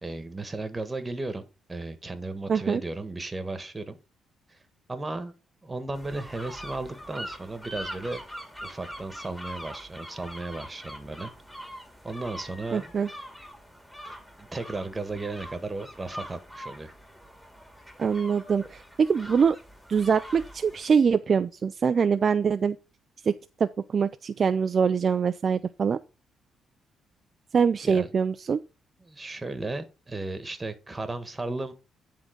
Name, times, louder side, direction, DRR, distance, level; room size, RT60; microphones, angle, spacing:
voice 1, 0.0-4.0 4.5-4.6 4.9-5.3 5.6-8.2 8.6-11.3 12.0-12.9 14.1-16.9 27.8-28.1 29.0-31.7, right 2 dB, 20° right, 1.4 m, -35 dB
voice 2, 2.5-2.8 12.7-13.1 18.0-19.6 19.9-22.8 23.3-26.0 27.5-28.6, right 6 dB, 45° right, 0.4 m, -24 dB
sound 1, 5.9-20.8, equal, 5° left, 2.1 m, -43 dB
10.0 x 3.7 x 5.1 m
cardioid pair, 90°, 0 cm